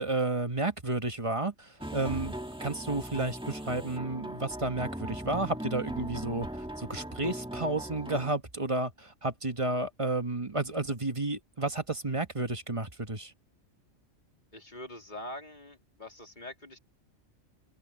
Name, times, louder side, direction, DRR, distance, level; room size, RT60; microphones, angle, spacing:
voice 1, 0.0-2.3 2.6-6.5 6.8-13.3, right 2 dB, 25° right, 1.3 m, -31 dB
sound 1, 1.8-8.3, right 1 dB, 5° right, 1.7 m, -39 dB
voice 2, 14.5-16.8, left 1 dB, 35° left, 3.4 m, -44 dB
omnidirectional pair, 1.4 m